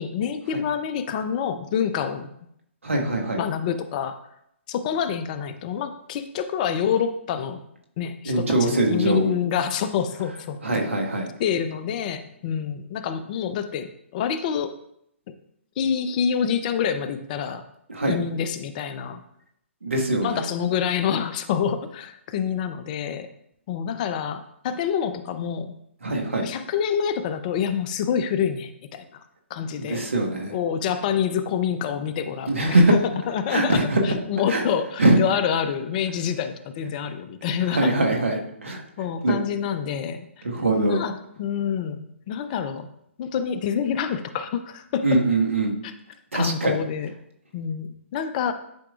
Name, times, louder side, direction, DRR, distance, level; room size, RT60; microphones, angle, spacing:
voice 1, 0.0-2.3 3.4-4.2 4.7-7.6 8.0-10.6 11.4-14.7 15.8-17.6 18.1-19.2 20.2-23.3 23.7-25.7 26.4-29.2 29.5-30.1 30.5-33.0 33.3-37.9 39.0-40.3 40.9-42.9 43.2-45.0 45.8-45.9 46.3-47.1 47.5-48.5, left 8 dB, 40° left, 10 dB, 0.6 m, -27 dB
voice 2, 2.8-3.4 8.2-9.3 10.6-11.3 17.9-18.2 19.8-20.4 26.0-26.5 29.8-30.5 32.5-32.9 33.5-34.0 34.5-34.6 35.0-35.2 37.7-38.8 39.2-39.3 40.4-41.0 45.0-45.7 46.3-46.8, right 2 dB, 80° right, 1 dB, 1.5 m, -22 dB
10.5 x 4.9 x 2.4 m, 0.74 s
figure-of-eight pair, 130°, 7 cm